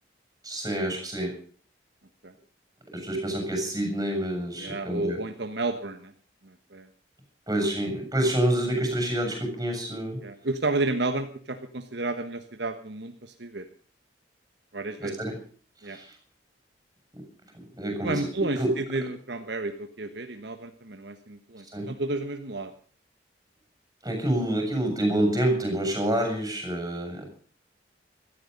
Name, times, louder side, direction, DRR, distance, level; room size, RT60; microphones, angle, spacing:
voice 1, 0.4-1.4 2.9-5.2 7.5-10.2 15.0-15.3 15.8-16.2 17.1-17.2 17.7-18.7 21.7-21.9 24.0-27.2, right 1 dB, 20° right, 4 dB, 7.0 m, -27 dB
voice 2, 4.6-6.1 6.4-6.9 10.2-13.7 14.7-15.1 15.8-16.0 18.0-22.7, right 2 dB, 65° right, 7 dB, 1.3 m, -31 dB
17.0 x 13.5 x 5.3 m, 0.43 s
head